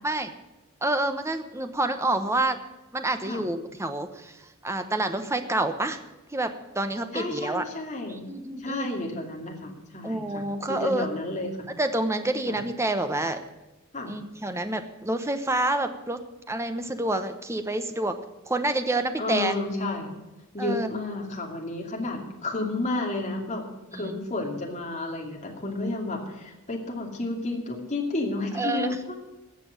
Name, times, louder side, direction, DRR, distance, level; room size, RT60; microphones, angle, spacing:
voice 1, 0.8-2.6 2.9-6.0 6.3-7.6 8.1-8.9 10.0-11.1 11.8-13.4 14.1-16.2 16.5-18.2 18.5-19.5 20.6-20.9 23.9-24.2 28.5-28.9, right 2 dB, 15° right, 8 dB, 1.0 m, -28 dB
voice 2, 7.1-8.3 8.6-10.4 10.7-11.7 12.5-12.6 13.9-14.2 19.2-20.1 20.5-29.2, left 2 dB, 35° left, 0 dB, 2.6 m, -31 dB
16.5 x 6.2 x 8.9 m, 1.0 s
head